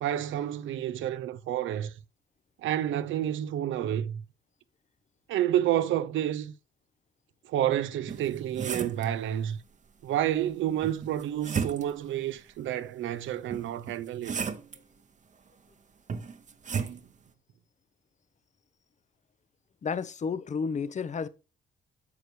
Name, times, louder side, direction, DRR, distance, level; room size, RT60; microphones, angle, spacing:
voice 1, 0.0-1.9 2.6-4.2 5.3-6.5 7.4-9.6 10.0-14.3 16.7-17.0, right 11 dB, 75° right, 0.6 m, -29 dB
sound 1, 8.1-9.1 10.8-12.1 13.5-14.8 16.1-17.0, right 6 dB, 40° right, 0.9 m, -34 dB
voice 2, 19.8-21.3, left 5 dB, 35° left, 0.7 m, -31 dB
9.5 x 6.6 x 3.2 m
cardioid pair, 90°, 20 cm